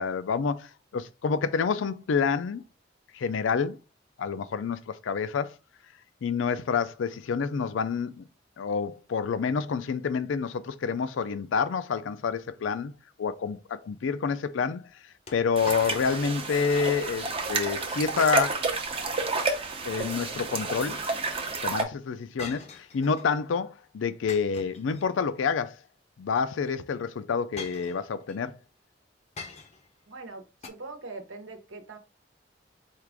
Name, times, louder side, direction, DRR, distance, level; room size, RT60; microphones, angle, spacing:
voice 1, 0.0-2.6 3.1-3.8 4.2-5.5 6.2-8.2 8.6-12.9 13.2-14.9 15.3-18.6 19.8-21.0 21.6-25.8 26.2-28.6, left 5 dB, 85° left, 0.4 m, -28 dB
sound 1, 15.3-16.4 16.8-16.9 17.5-17.9 19.8-20.7 22.4-23.4 24.3-25.4 26.6-26.7 27.6-28.4 29.4-30.0 30.6-30.7, left 4 dB, 35° left, 0.6 m, -44 dB
sound 2, 15.6-21.8, right 3 dB, 30° right, 0.6 m, -30 dB
voice 2, 30.1-32.0, right 3 dB, 85° right, 0.9 m, -42 dB
4.5 x 2.4 x 3.4 m
head